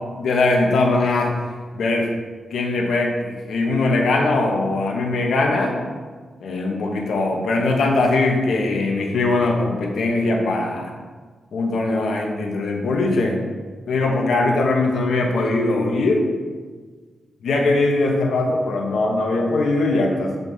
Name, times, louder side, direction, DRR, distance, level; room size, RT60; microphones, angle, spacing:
voice 1, 0.0-1.3 1.7-2.1 2.5-5.8 6.4-10.9 11.5-13.4 13.9-16.3 17.4-20.4, left 2 dB, 85° left, 1 dB, 1.3 m, -21 dB
7.7 x 5.6 x 4.1 m, 1.5 s
wide cardioid pair, 140°, 0 cm